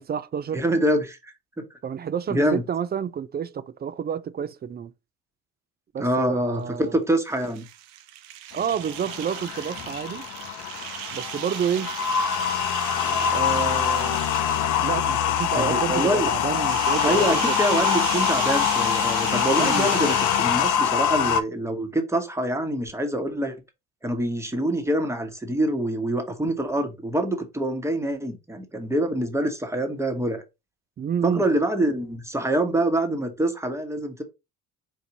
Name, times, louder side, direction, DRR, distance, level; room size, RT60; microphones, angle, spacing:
voice 1, 0.0-0.6 1.8-4.9 5.9-7.0 8.5-10.2 11.1-11.9 13.3-14.2 14.8-17.6 19.6-19.9 31.0-31.4, right 8 dB, 30° right, 0.4 m, -29 dB
voice 2, 0.5-1.6 2.3-2.6 6.0-7.6 15.5-16.3 17.0-23.6 24.0-30.4 31.2-34.2, right 1 dB, 10° right, 1.2 m, -25 dB
sound 1, 7.3-15.0 16.5-20.9, right 12 dB, 90° right, 0.6 m, -36 dB
sound 2, 8.6-21.4, left 8 dB, 60° left, 0.7 m, -24 dB
4.6 x 2.6 x 3.9 m
supercardioid pair, 75°, 35 cm